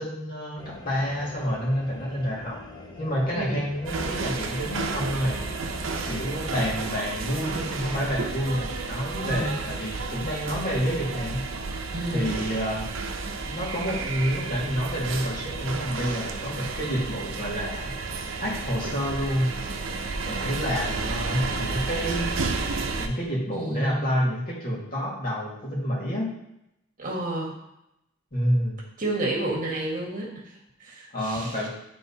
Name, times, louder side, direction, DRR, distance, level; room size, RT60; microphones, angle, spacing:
voice 1, 0.0-2.6 3.0-5.5 6.0-11.4 12.1-12.9 13.5-17.9 18.4-19.5 20.3-22.3 23.0-26.3 28.3-28.8 31.1-31.7, equal, 45° left, -4 dB, 1.9 m, -28 dB
sound 1, 0.6-6.7, left 1 dB, 20° left, 0.6 m, -43 dB
voice 2, 3.3-3.7 9.2-9.6 11.9-12.3 23.5-24.1 27.0-27.6 29.0-30.3 30.8-31.7, right 1 dB, 45° right, -3 dB, 1.6 m, -30 dB
sound 2, 3.9-23.1, right 3 dB, 75° right, 0.6 m, -32 dB
10.0 x 3.8 x 2.8 m, 0.85 s
head